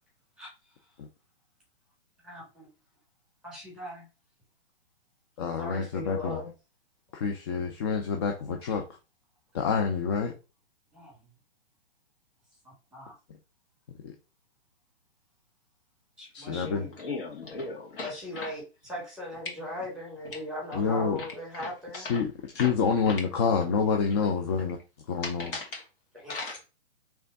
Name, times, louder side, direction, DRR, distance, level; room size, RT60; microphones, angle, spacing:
voice 1, 2.2-2.7 3.4-4.1 5.6-6.5 10.9-11.3 12.6-13.1 16.2-16.9 18.0-22.2 26.1-26.4, left 1 dB, ahead, -4 dB, 2.3 m, -39 dB
voice 2, 5.4-6.4 7.1-8.8 9.5-10.3 14.0-14.1 16.3-16.9 20.7-21.2 21.9-24.8 25.1-25.6, left 6 dB, 25° left, 2 dB, 0.4 m, -28 dB
voice 3, 16.6-18.1 22.6-22.7 25.5-25.8 26.3-26.6, left 3 dB, 55° left, 0 dB, 2.3 m, -36 dB
3.4 x 3.3 x 4.0 m, 0.30 s
hypercardioid pair, 145°, 34 cm